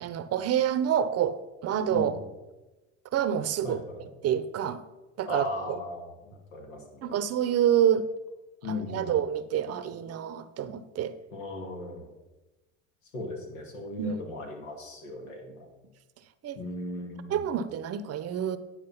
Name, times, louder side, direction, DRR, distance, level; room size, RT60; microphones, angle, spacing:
voice 1, 0.0-2.2 3.1-3.8 4.2-4.8 5.2-5.8 7.0-8.1 8.7-11.2 14.0-14.2 16.4-16.6 17.3-18.6, right 9 dB, 40° right, 13 dB, 0.7 m, -27 dB
voice 2, 3.6-4.0 5.3-7.2 8.6-9.2 11.3-12.1 13.1-15.7 16.6-17.4, left 2 dB, 90° left, 2 dB, 2.2 m, -37 dB
9.7 x 4.8 x 5.7 m, 1.1 s
hypercardioid pair, 85°, 37 cm